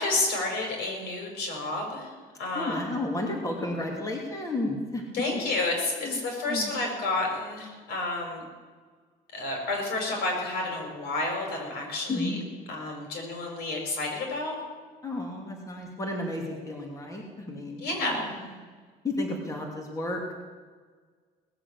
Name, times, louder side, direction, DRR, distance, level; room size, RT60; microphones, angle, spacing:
voice 1, 0.0-2.1 2.4-2.8 5.1-8.4 9.3-12.3 12.7-14.5 17.8-18.4, left 2 dB, 75° left, 1 dB, 5.8 m, -30 dB
voice 2, 2.5-5.0 6.0-6.2 6.5-6.7 12.1-12.4 15.0-18.7 19.0-20.3, left 2 dB, 20° left, 0 dB, 2.9 m, -32 dB
19.0 x 7.5 x 8.4 m, 1.5 s
cardioid pair, 110°, 17 cm